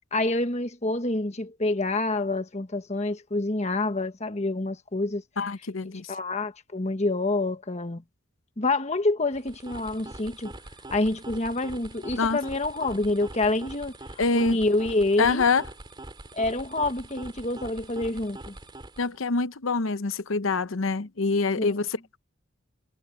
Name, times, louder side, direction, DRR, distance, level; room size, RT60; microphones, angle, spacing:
voice 1, 0.1-5.2 6.1-8.0 8.6-10.5 10.9-13.9 14.3-15.4 16.3-18.5 21.6-21.8, left 2 dB, 35° left, 1.4 m, -27 dB
voice 2, 5.4-6.1 12.2-12.4 14.2-14.6 15.2-15.6 19.0-22.2, left 4 dB, 85° left, 0.9 m, -25 dB
sound 1, 9.3-19.2, right 2 dB, 25° right, 3.2 m, -43 dB
head